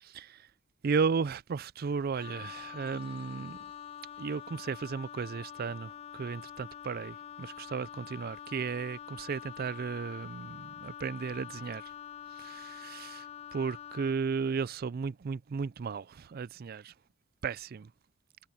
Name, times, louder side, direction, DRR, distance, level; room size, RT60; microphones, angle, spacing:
voice 1, 0.1-0.5 0.8-3.6 4.2-11.9 12.3-13.3 13.5-16.9 17.4-17.9, right 5 dB, 50° right, 0.4 m, -34 dB
Wind instrument woodwind instrument, 2.1-14.2, left 9 dB, 30° left, 0.3 m, -46 dB
sound 1, 2.5-7.0, right 5 dB, 30° right, 4.2 m, -68 dB
head